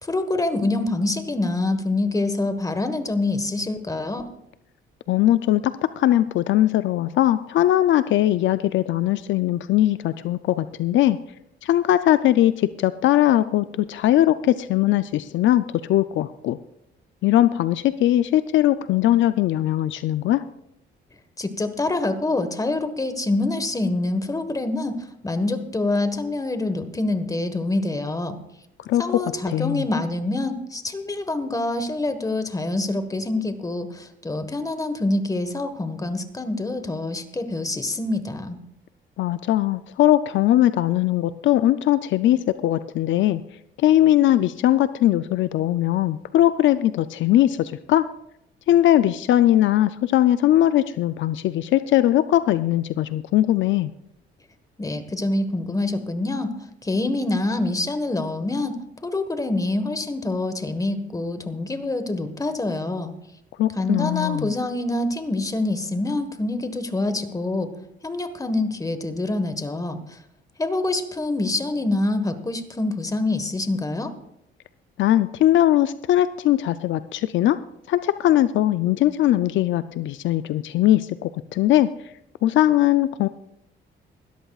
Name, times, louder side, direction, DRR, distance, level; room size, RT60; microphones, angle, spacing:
voice 1, 0.0-4.3 21.4-25.0 25.2-28.4 29.0-38.6 54.8-56.5 56.8-63.1 63.7-67.7 68.0-70.0 70.6-74.1, left 2 dB, 15° left, 9 dB, 1.4 m, -26 dB
voice 2, 5.1-11.2 11.6-16.6 17.2-20.4 28.9-29.2 29.5-29.9 39.2-43.4 43.8-48.1 48.7-53.9 63.6-64.5 75.0-77.6 77.9-81.9 82.4-83.3, left 13 dB, 70° left, 13 dB, 0.5 m, -20 dB
20.5 x 13.5 x 2.4 m, 0.79 s
cardioid pair, 90°, 20 cm